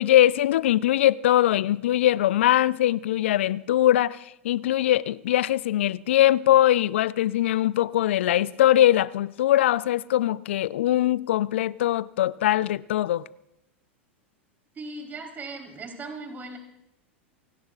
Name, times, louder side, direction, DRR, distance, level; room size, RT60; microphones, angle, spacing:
voice 1, 0.0-13.2, left 13 dB, 70° left, 0.5 m, -21 dB
voice 2, 14.8-16.6, right 3 dB, 25° right, 3.9 m, -38 dB
28.0 x 17.5 x 2.5 m
hypercardioid pair, 95°, 7 cm